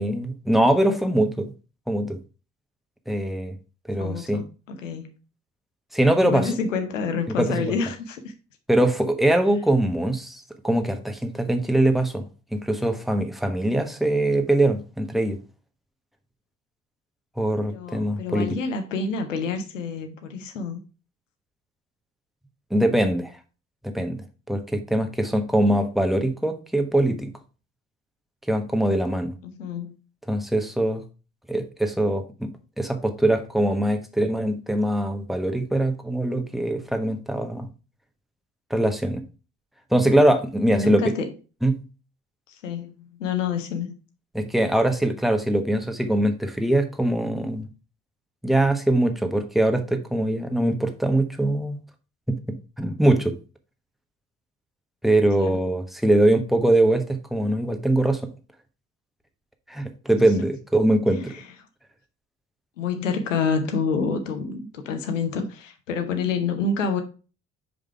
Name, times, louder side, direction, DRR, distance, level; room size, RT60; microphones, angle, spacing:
voice 1, 0.0-1.5 1.9-2.2 3.1-3.5 3.9-4.4 5.9-6.5 7.4-7.8 8.7-12.2 12.5-15.4 17.4-18.5 22.7-23.3 23.8-27.3 28.5-29.3 30.3-31.0 31.5-32.5 32.8-37.7 38.7-39.2 39.9-41.0 41.6-41.8 44.3-47.7 48.4-51.8 52.3-52.4 52.8-53.3 55.0-58.2 59.7-61.3, right 1 dB, ahead, 1.1 m, -22 dB
voice 2, 4.0-5.2 6.2-8.3 17.7-20.8 29.4-30.0 40.7-41.3 42.5-43.9 55.4-55.6 61.1-61.5 62.8-67.0, left 5 dB, 80° left, 0.8 m, -28 dB
5.2 x 5.0 x 4.6 m
figure-of-eight pair, 45°, 37 cm